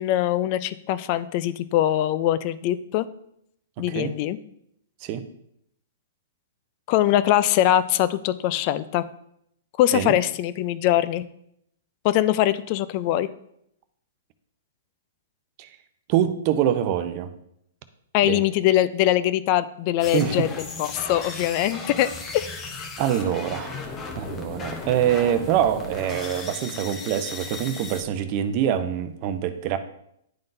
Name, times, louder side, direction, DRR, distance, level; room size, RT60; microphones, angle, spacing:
voice 1, 0.0-3.1 3.8-4.4 6.9-9.0 9.8-11.2 12.0-13.3 18.1-22.1 22.8-22.9, left 13 dB, 40° left, 14 dB, 0.4 m, -22 dB
voice 2, 3.8-4.1 5.0-5.2 9.9-10.1 15.6-15.7 16.1-17.3 18.2-18.4 20.1-20.5 23.0-23.7 24.1-29.8, right 10 dB, 40° right, 10 dB, 0.6 m, -25 dB
sound 1, 20.0-28.0, left 4 dB, 20° left, 0.9 m, -36 dB
10.5 x 3.8 x 2.6 m, 0.74 s
hypercardioid pair, 130°, 0 cm